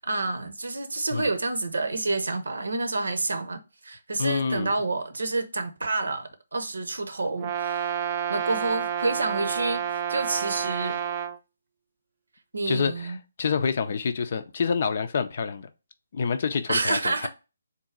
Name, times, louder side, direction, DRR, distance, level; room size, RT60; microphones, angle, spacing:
voice 1, 0.0-7.9 8.3-9.8 10.1-11.0 12.5-13.2 16.7-17.3, right 3 dB, 70° right, 0.7 m, -28 dB
voice 2, 4.2-4.7 12.7-15.7 16.1-17.3, left 6 dB, 50° left, 0.5 m, -27 dB
Brass instrument, 7.4-11.4, right 9 dB, 30° right, 0.5 m, -29 dB
3.7 x 2.7 x 4.3 m
figure-of-eight pair, 140°, 0 cm